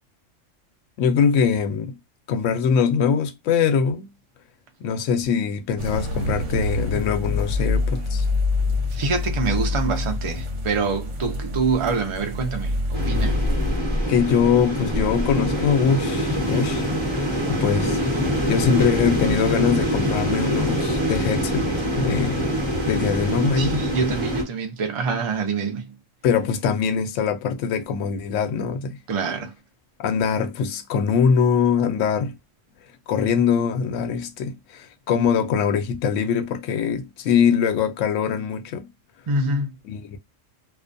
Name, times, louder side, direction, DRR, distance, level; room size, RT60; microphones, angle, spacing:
voice 1, 1.0-1.9 2.3-4.1 4.8-8.3 14.1-16.9 17.5-18.0 18.5-21.7 22.0-22.4 22.9-23.7 26.2-29.0 30.0-32.4 33.1-38.9 39.8-40.2, left 6 dB, 75° left, 0.9 m, -22 dB
sound 1, 5.8-13.8, left 2 dB, 70° right, 1.0 m, -26 dB
voice 2, 8.9-13.4 23.5-25.9 29.1-29.5 39.3-39.7, right 4 dB, 50° right, 0.3 m, -25 dB
sound 2, 12.9-24.4, equal, 25° right, 1.0 m, -24 dB
2.4 x 2.2 x 2.5 m
omnidirectional pair, 1.3 m